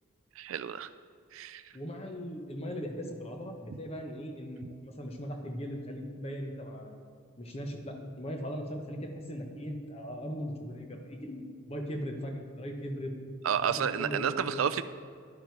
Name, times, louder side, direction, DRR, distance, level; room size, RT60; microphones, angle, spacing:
voice 1, 0.4-0.9 1.3-1.7 13.4-14.8, right 8 dB, 80° right, 12 dB, 0.4 m, -30 dB
voice 2, 1.7-7.0 7.4-13.1 13.6-14.7, equal, 30° left, 3 dB, 1.1 m, -39 dB
11.0 x 9.8 x 4.7 m, 2.3 s
head